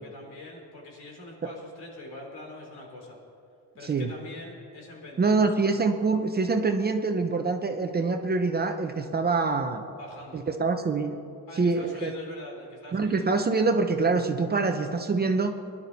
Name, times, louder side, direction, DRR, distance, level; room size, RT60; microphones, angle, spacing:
voice 1, 0.0-3.2 3.8-5.5 9.9-10.5 11.5-13.3, left 2 dB, 65° left, -1 dB, 4.1 m, -44 dB
voice 2, 5.2-9.8 10.3-11.2 11.6-12.2 12.9-15.6, right 4 dB, 25° right, 5 dB, 0.7 m, -25 dB
22.0 x 11.5 x 4.1 m, 2.5 s
cardioid pair, 140°, 41 cm